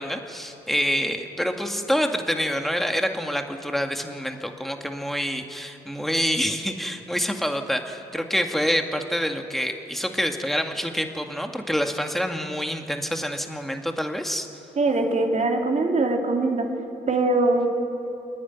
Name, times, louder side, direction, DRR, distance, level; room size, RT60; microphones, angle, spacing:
voice 1, 0.0-14.5, equal, ahead, 5 dB, 2.1 m, -27 dB
voice 2, 14.8-16.6 17.1-17.7, right 2 dB, 40° right, 2 dB, 3.3 m, -22 dB
28.5 x 9.9 x 9.5 m, 3.0 s
supercardioid pair, 55°, 18 cm